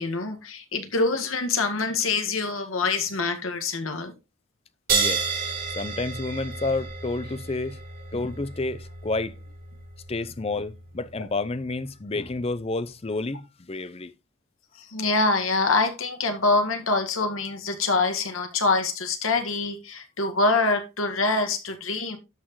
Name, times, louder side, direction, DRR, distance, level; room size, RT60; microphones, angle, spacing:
voice 1, 0.0-4.1 14.8-22.2, left 3 dB, 80° left, 1.8 m, -25 dB
voice 2, 4.9-5.3 5.8-7.8 8.1-9.3 10.1-14.1, left 3 dB, 30° left, 0.6 m, -30 dB
sound 1, 4.9-11.9, right 5 dB, 45° right, 3.4 m, -32 dB
12.5 x 6.1 x 3.1 m
head